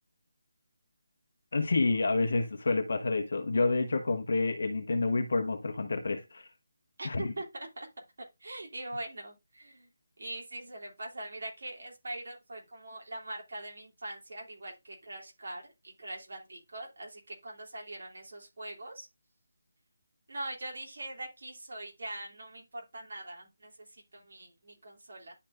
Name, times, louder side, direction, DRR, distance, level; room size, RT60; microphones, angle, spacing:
voice 1, 1.5-6.5 7.0-7.3, left 3 dB, 55° left, 1.2 m, -29 dB
voice 2, 7.0-7.9 8.4-9.9 10.2-19.1 20.3-25.3, right 1 dB, 60° right, 3.0 m, -42 dB
11.0 x 4.2 x 2.6 m
figure-of-eight pair, 175°, 0 cm